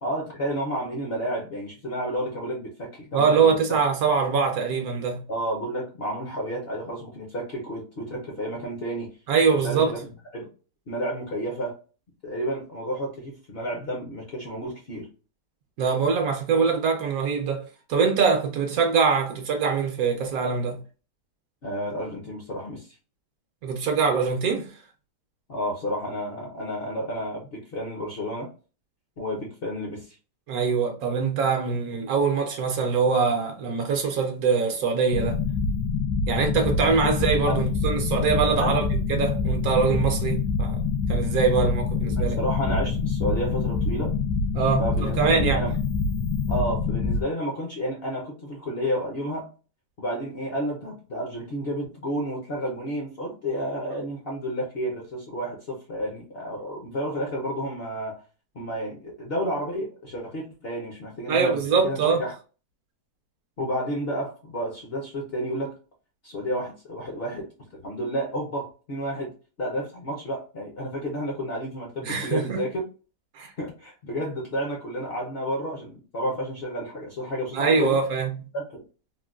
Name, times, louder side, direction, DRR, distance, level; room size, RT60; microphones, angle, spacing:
voice 1, 0.0-3.5 5.3-9.1 9.5-10.0 10.3-10.5 10.9-11.7 12.2-15.1 21.6-22.9 25.5-28.5 29.2-30.2 37.5-37.6 38.6-38.8 42.1-44.1 44.8-45.7 46.5-49.5 50.0-58.2 58.5-62.3 63.6-65.8 66.2-69.3 69.6-72.8 73.6-78.0 78.5-78.8, equal, 55° left, 0.7 m, -31 dB
voice 2, 3.1-5.2 9.3-9.9 15.8-20.8 23.6-24.7 30.5-35.4 36.3-40.8 41.1-42.4 44.5-45.6 61.3-62.2 72.0-72.6 73.3-73.5 77.5-78.3, right 5 dB, 70° right, 1.0 m, -23 dB
sound 1, 35.1-47.2, left 4 dB, 80° left, 1.2 m, -26 dB
3.7 x 2.1 x 2.3 m
omnidirectional pair, 1.8 m